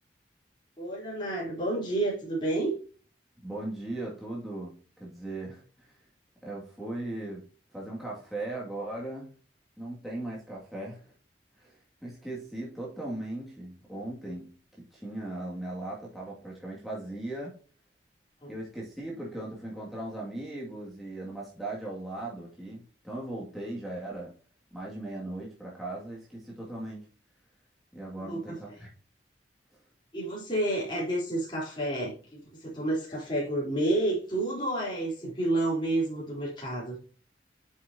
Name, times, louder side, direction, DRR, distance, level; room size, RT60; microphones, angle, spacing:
voice 1, 0.8-2.7 18.4-18.5 28.2-28.8 30.1-37.0, right 1 dB, 25° left, -5 dB, 3.8 m, -30 dB
voice 2, 3.4-5.9 6.4-7.4 7.7-9.3 9.8-11.0 11.6-11.8 12.0-14.5 14.8-17.6 18.5-24.3 24.7-27.1 27.9-28.9, right 2 dB, ahead, -5 dB, 2.3 m, -38 dB
8.1 x 6.5 x 2.8 m, 0.37 s
head